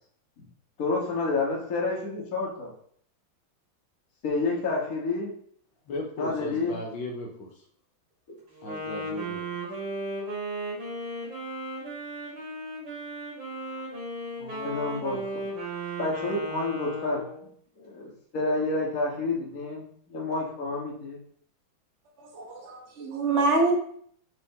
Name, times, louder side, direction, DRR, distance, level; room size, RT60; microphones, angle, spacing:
voice 1, 0.8-2.7 4.2-5.3 6.2-6.8 13.7-13.8 14.4-15.2 16.0-17.5 17.8-21.2, left 3 dB, 50° left, -4 dB, 1.7 m, -29 dB
voice 2, 5.9-7.5 8.6-9.4, left 2 dB, 75° left, 2 dB, 1.7 m, -36 dB
Wind instrument woodwind instrument, 8.5-17.5, right 1 dB, 75° right, 3.2 m, -35 dB
voice 3, 22.2-23.7, right 3 dB, 40° right, 0 dB, 1.4 m, -26 dB
5.7 x 4.9 x 3.6 m, 0.62 s
omnidirectional pair, 2.1 m